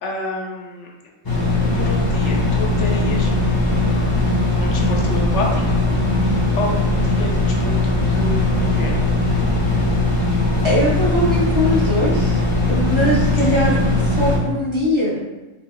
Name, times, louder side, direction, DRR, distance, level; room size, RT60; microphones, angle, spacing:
voice 1, 0.0-0.9 1.7-5.6 6.1-6.2 6.6-9.2 13.4-13.6, left 2 dB, 65° left, -1 dB, 0.9 m, -30 dB
sound 1, 1.2-14.4, left 2 dB, 25° left, 0.5 m, -19 dB
voice 2, 10.6-12.4 12.7-15.3, equal, 35° right, -6 dB, 0.5 m, -21 dB
3.9 x 2.7 x 2.3 m, 1.1 s
omnidirectional pair, 1.4 m